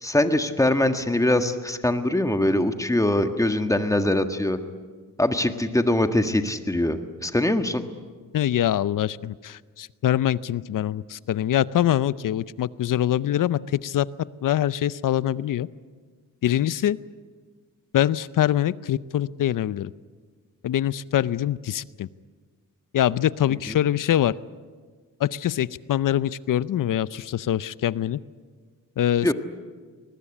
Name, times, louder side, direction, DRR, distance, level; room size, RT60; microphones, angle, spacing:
voice 1, 0.0-4.6 5.2-7.8 29.2-29.3, left 1 dB, 10° left, 7 dB, 1.6 m, -22 dB
voice 2, 8.3-14.1 14.4-15.7 16.4-17.0 17.9-19.9 20.6-22.1 22.9-24.3 25.2-28.2 29.0-29.3, left 11 dB, 65° left, 18 dB, 0.7 m, -24 dB
22.5 x 20.0 x 10.0 m, 1.5 s
cardioid pair, 105°, 34 cm